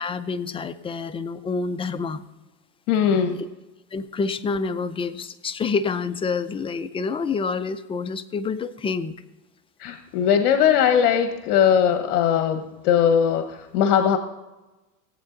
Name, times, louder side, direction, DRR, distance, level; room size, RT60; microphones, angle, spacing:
voice 1, 0.0-2.2 3.9-9.2, left 4 dB, 15° left, 10 dB, 0.4 m, -27 dB
voice 2, 2.9-3.4 9.8-14.2, left 8 dB, 70° left, 8 dB, 1.1 m, -20 dB
17.0 x 8.5 x 3.8 m, 1.1 s
supercardioid pair, 115°, 45 cm